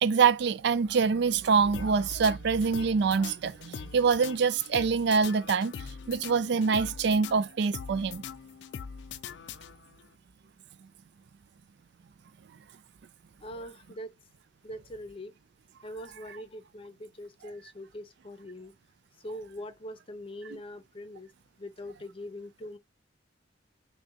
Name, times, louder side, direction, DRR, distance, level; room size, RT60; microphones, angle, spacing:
voice 1, 0.0-5.7 6.1-8.2, right 5 dB, 65° right, 0.4 m, -25 dB
sound 1, 1.7-10.1, left 7 dB, 70° left, 0.4 m, -42 dB
voice 2, 13.4-14.1 14.6-15.3 15.8-18.7 19.2-21.3 21.6-22.8, left 1 dB, 30° left, 0.6 m, -42 dB
6.1 x 2.2 x 2.8 m
head